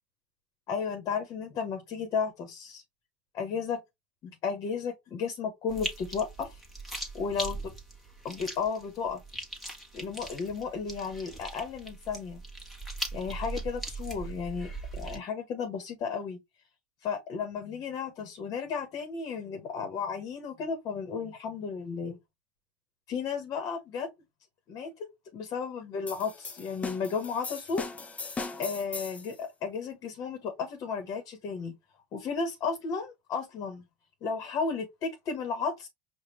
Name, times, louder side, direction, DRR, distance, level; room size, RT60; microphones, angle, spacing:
voice 1, 0.7-2.8 3.3-3.8 4.2-6.6 7.1-7.6 8.2-9.2 9.9-12.4 13.1-16.4 17.0-22.2 23.1-24.1 24.7-24.9 25.3-27.8 28.6-31.7 32.1-33.8 34.2-35.9, left 5 dB, 50° left, 1.2 m, -33 dB
sound 1, 5.7-15.2, right 2 dB, ahead, 1.4 m, -40 dB
sound 2, 26.1-29.3, left 4 dB, 20° left, 0.7 m, -39 dB
5.1 x 2.4 x 3.1 m
supercardioid pair, 95°, 7 cm